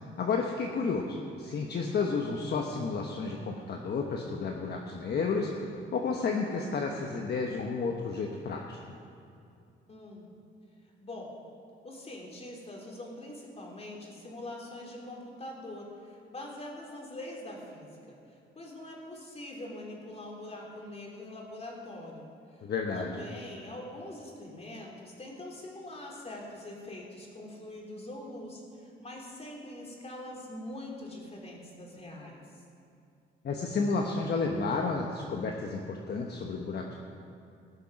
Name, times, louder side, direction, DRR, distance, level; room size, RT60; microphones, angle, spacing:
voice 1, 0.2-9.0 22.6-23.2 33.4-36.9, left 4 dB, 55° left, 1 dB, 1.2 m, -31 dB
voice 2, 9.9-10.3 11.0-11.4 11.8-22.7 22.9-32.6, left 1 dB, 30° left, -1 dB, 3.3 m, -43 dB
19.0 x 6.9 x 5.9 m, 2.6 s
cardioid pair, 95°, 21 cm